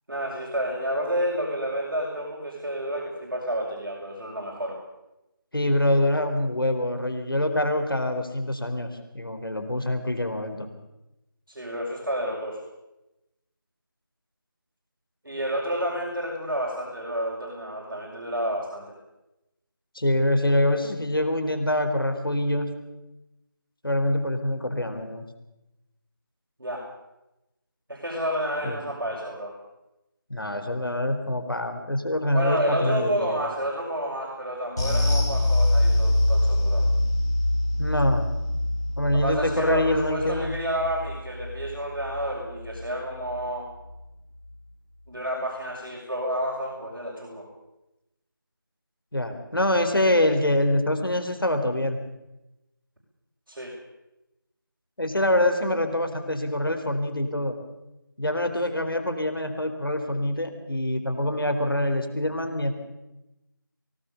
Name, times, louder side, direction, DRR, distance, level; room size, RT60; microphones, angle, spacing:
voice 1, 0.1-4.8 11.5-12.6 15.2-19.0 26.6-26.9 27.9-29.6 32.3-36.9 39.1-43.7 45.1-47.5 53.5-53.7, equal, 70° right, -3 dB, 6.3 m, -30 dB
voice 2, 5.5-10.7 19.9-22.7 23.8-25.2 28.6-28.8 30.3-33.4 37.8-38.2 39.0-40.5 49.1-52.0 55.0-57.6 58.2-62.7, left 1 dB, 80° left, 6 dB, 4.0 m, -25 dB
sound 1, 34.8-43.4 43.7-43.9 44.3-44.4, left 1 dB, 50° left, 6.9 m, -25 dB
24.0 x 18.0 x 7.0 m, 0.95 s
figure-of-eight pair, 170°, 12 cm